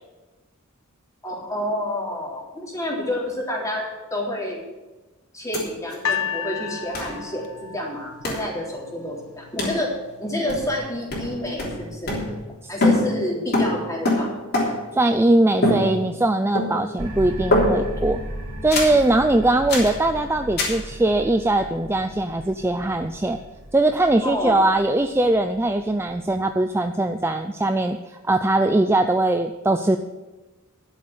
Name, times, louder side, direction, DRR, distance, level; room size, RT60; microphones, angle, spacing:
voice 1, 1.2-4.6 5.3-9.9 10.2-12.2 12.7-14.3 24.2-24.7, left 1 dB, 15° left, -3 dB, 3.6 m, -29 dB
sound 1, 5.5-5.6 5.9-6.0 6.9-7.2 8.2-8.5 9.6-9.8 10.5-10.8 11.1-12.6 12.8-15.0 15.6-16.3 16.6-17.0 17.5-18.0 18.7-19.0 19.7-20.0 20.6-20.8, left 1 dB, 50° left, 3.4 m, -24 dB
sound 2, 6.0-9.2 10.0-10.1, left 7 dB, 80° left, 0.9 m, -31 dB
voice 2, 14.9-18.2 18.6-23.4 23.7-30.0, right 2 dB, 10° right, 7 dB, 0.4 m, -21 dB
sound 3, 17.0-26.4, right 1 dB, 70° right, 2.7 m, -36 dB
11.5 x 7.6 x 8.1 m, 1.1 s
head